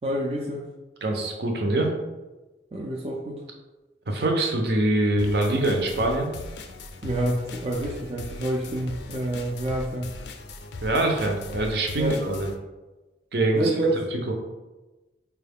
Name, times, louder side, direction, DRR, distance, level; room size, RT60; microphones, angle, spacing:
voice 1, 0.0-0.6 2.7-3.4 4.1-4.2 7.0-10.1 12.0-12.2 13.5-13.9, right 1 dB, 35° right, -2 dB, 0.4 m, -28 dB
voice 2, 1.0-1.9 4.1-6.3 10.8-12.5 13.3-13.7 14.1-14.3, right 2 dB, 70° right, 2 dB, 0.7 m, -24 dB
sound 1, 5.2-12.6, left 2 dB, 80° left, 0.4 m, -39 dB
4.6 x 2.3 x 3.4 m, 1.1 s
head